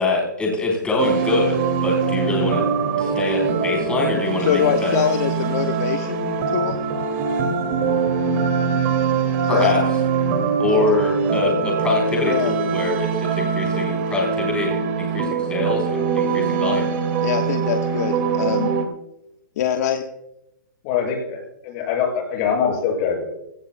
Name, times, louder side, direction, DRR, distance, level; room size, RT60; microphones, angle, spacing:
voice 1, 0.0-2.7 3.0-5.0 9.5-9.8 10.6-16.9, left 3 dB, 10° left, -2 dB, 4.0 m, -24 dB
sound 1, 1.0-18.8, right 5 dB, 40° right, 2.3 m, -22 dB
voice 2, 4.4-6.8 9.5-9.7 12.2-12.5 17.2-18.7 19.6-20.0, left 9 dB, 50° left, 5 dB, 1.2 m, -23 dB
voice 3, 20.8-23.2, left 7 dB, 35° left, 1 dB, 6.7 m, -23 dB
23.0 x 17.0 x 2.2 m, 0.88 s
hypercardioid pair, 150°, 11 cm